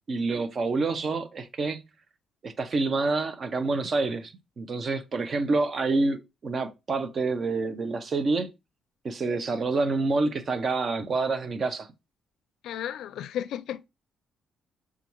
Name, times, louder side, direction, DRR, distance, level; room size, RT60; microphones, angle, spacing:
voice 1, 0.1-1.8 2.4-8.5 9.0-11.9, right 3 dB, 45° right, 0.7 m, -27 dB
voice 2, 12.6-13.8, left 10 dB, 80° left, 0.4 m, -34 dB
6.7 x 2.4 x 3.0 m
cardioid pair, 90°, 0 cm